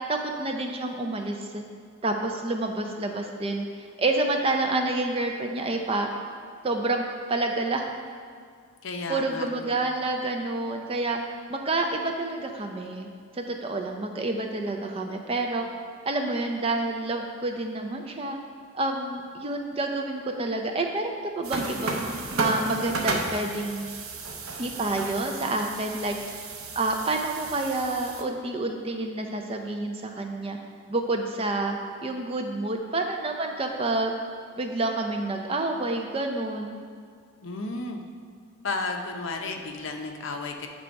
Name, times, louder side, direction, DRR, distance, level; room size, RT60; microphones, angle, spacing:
voice 1, 0.1-1.6 2.0-6.1 6.6-7.9 9.1-11.2 11.5-13.1 13.3-15.7 16.1-18.4 18.7-22.0 22.4-23.9 24.6-26.2 26.8-30.6 30.9-34.1 34.6-36.8, right 2 dB, 25° right, 3 dB, 0.4 m, -28 dB
voice 2, 8.8-9.8 37.4-38.0 38.6-40.7, left 3 dB, 65° left, 3 dB, 0.6 m, -33 dB
sound 1, 21.4-28.2, right 3 dB, 85° right, 0.7 m, -33 dB
8.0 x 3.4 x 5.1 m, 2.1 s
head